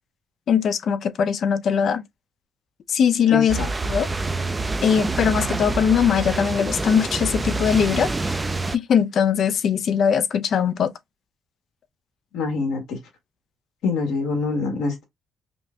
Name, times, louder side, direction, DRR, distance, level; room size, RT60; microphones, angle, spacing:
voice 1, 0.5-2.0 2.9-3.6 3.9-4.1 4.8-8.4 8.7-10.9, left 7 dB, 60° left, 0.5 m, -21 dB
voice 2, 3.3-3.7 12.3-13.0 13.8-15.0, left 4 dB, 85° left, 1.8 m, -25 dB
sound 1, 3.5-8.8, right 3 dB, 20° right, 0.4 m, -26 dB
5.3 x 2.2 x 2.6 m
cardioid pair, 90°, 0 cm